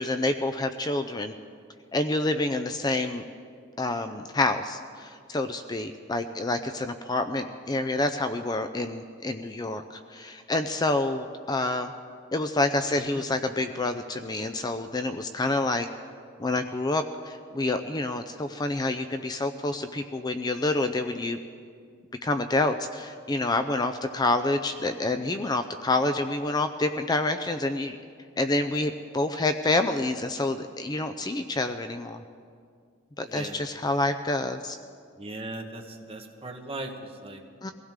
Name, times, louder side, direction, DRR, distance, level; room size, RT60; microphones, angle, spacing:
voice 1, 0.0-1.3 1.9-3.2 3.8-11.9 12.3-15.9 16.4-21.4 22.2-28.0 28.4-32.2 33.2-34.8 37.6-37.7, left 2 dB, 20° left, 8 dB, 0.4 m, -28 dB
voice 2, 33.3-33.6 35.2-35.8 36.1-36.9 37.2-37.4, right 2 dB, 30° right, 2 dB, 1.4 m, -37 dB
22.5 x 16.0 x 3.7 m, 2.2 s
head